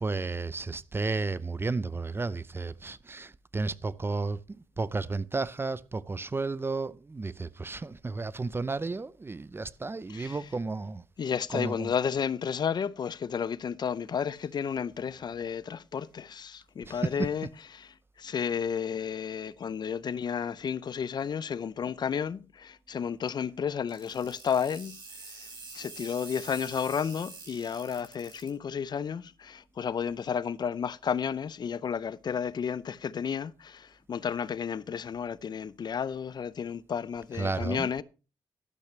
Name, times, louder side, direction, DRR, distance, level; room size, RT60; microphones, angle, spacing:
voice 1, 0.0-4.4 4.8-11.0 11.5-11.9 16.9-17.0 37.4-38.0, right 3 dB, 25° right, 0.6 m, -33 dB
voice 2, 10.1-10.5 11.2-17.5 17.7-25.0 25.7-38.0, left 7 dB, 55° left, 0.5 m, -32 dB
sound 1, 23.9-28.5, right 3 dB, 55° right, 6.2 m, -46 dB
12.0 x 11.5 x 3.2 m
supercardioid pair, 60°, 9 cm